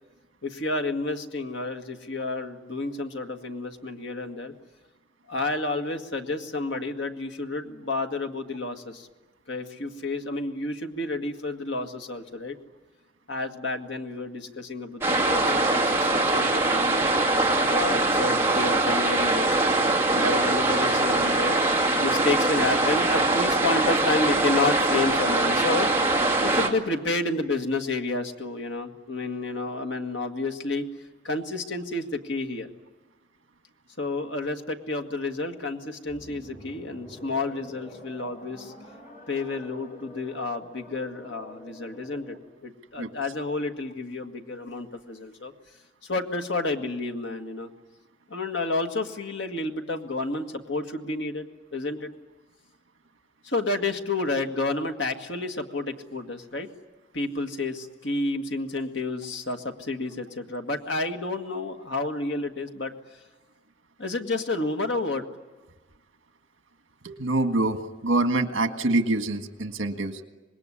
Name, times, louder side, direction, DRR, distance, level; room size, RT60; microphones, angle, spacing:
voice 1, 0.4-4.5 5.3-9.1 9.5-12.6 13.3-17.1 17.6-19.8 20.1-25.9 26.4-30.9 31.2-32.7 34.0-38.7 39.3-45.5 46.0-47.7 48.3-51.4 51.7-52.1 53.4-56.7 57.1-63.0 64.0-65.2, left 2 dB, 60° left, 4 dB, 1.9 m, -30 dB
sound 1, 15.0-26.7, right 2 dB, 10° right, 2.4 m, -22 dB
sound 2, 36.1-42.6, left 1 dB, 40° left, 6.1 m, -47 dB
voice 2, 67.0-70.3, right 2 dB, 75° right, 7 dB, 1.8 m, -26 dB
26.0 x 20.5 x 10.0 m, 1.2 s
head